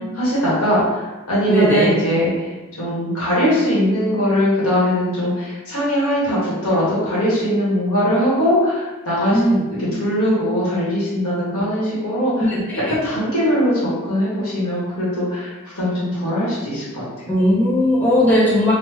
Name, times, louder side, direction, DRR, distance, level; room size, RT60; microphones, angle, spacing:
voice 1, 0.1-2.5 2.8-17.0, equal, 80° left, -8 dB, 1.2 m, -20 dB
voice 2, 1.5-1.9 9.3-9.6 12.5-12.6 12.9-13.0 17.3-18.7, equal, 10° left, -7 dB, 0.5 m, -17 dB
3.2 x 2.0 x 3.2 m, 1.1 s
head